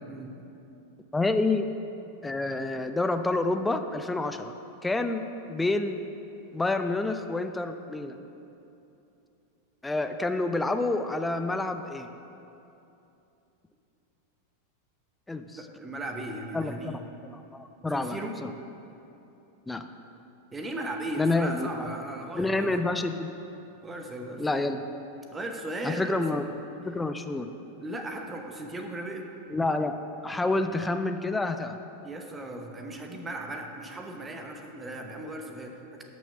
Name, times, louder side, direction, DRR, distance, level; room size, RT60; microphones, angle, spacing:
voice 1, 1.1-1.7 2.2-4.5 4.8-6.0 6.5-8.2 9.8-12.1 15.3-15.6 16.5-17.0 17.3-18.5 19.7-19.8 21.2-21.9 22.4-23.3 24.4-24.8 25.8-26.5 26.8-27.5 29.5-30.0 30.2-31.8, left 2 dB, 10° left, 8 dB, 0.5 m, -28 dB
voice 2, 15.6-17.0 17.9-18.4 20.5-22.7 23.8-24.6 25.3-26.4 27.8-29.3 32.0-36.0, right 1 dB, 15° right, 3 dB, 1.1 m, -37 dB
12.0 x 6.2 x 5.7 m, 2.8 s
figure-of-eight pair, 90°, 0 cm